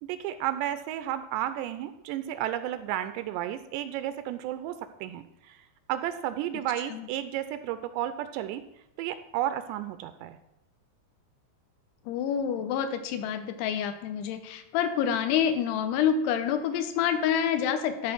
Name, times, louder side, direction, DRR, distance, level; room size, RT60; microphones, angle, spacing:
voice 1, 0.0-5.6 5.9-8.6 9.0-10.4, right 12 dB, 85° right, 11 dB, 2.6 m, -32 dB
voice 2, 12.1-18.1, left 8 dB, 80° left, 8 dB, 2.8 m, -27 dB
13.0 x 4.4 x 6.0 m, 0.87 s
omnidirectional pair, 5.0 m